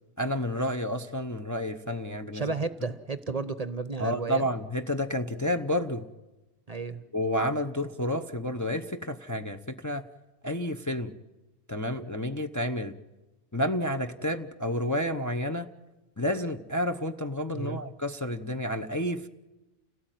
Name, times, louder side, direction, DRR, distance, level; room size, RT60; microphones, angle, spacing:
voice 1, 0.2-2.4 4.0-6.1 7.1-10.1 10.4-11.1 11.7-13.0 13.5-15.7 16.2-19.3, left 1 dB, 15° left, 5 dB, 0.8 m, -30 dB
voice 2, 2.3-4.5 6.7-7.0 17.5-17.8, right 4 dB, 35° right, 12 dB, 1.0 m, -33 dB
29.0 x 17.5 x 9.2 m, 1.1 s
omnidirectional pair, 1.2 m